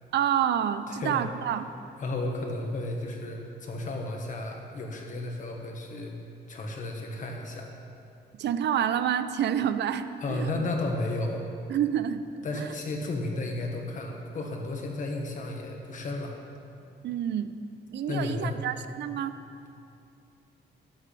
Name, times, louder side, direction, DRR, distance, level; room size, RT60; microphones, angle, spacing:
voice 1, 0.1-1.7 8.4-10.5 11.7-12.2 17.0-17.5 17.9-19.3, right 9 dB, 70° right, 11 dB, 0.5 m, -28 dB
voice 2, 0.9-1.2 2.0-6.1 6.5-7.7 10.2-11.5 12.4-16.4 18.1-18.6, left 2 dB, 45° left, 1 dB, 1.4 m, -33 dB
14.5 x 11.0 x 3.4 m, 2.6 s
wide cardioid pair, 170°, 18 cm